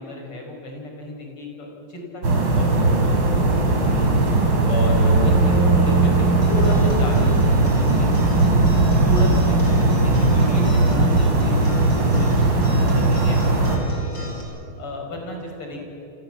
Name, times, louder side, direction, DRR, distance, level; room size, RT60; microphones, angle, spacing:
voice 1, 0.0-3.6 3.9-4.1 4.7-8.3 8.7-14.3 14.8-15.8, left 2 dB, 85° left, 1 dB, 6.2 m, -33 dB
sound 1, 2.2-13.8, right 2 dB, 60° right, 4.1 m, -18 dB
Acoustic guitar, 6.4-14.4, equal, 60° left, 6.9 m, -36 dB
29.5 x 26.5 x 7.7 m, 2.8 s
omnidirectional pair, 2.4 m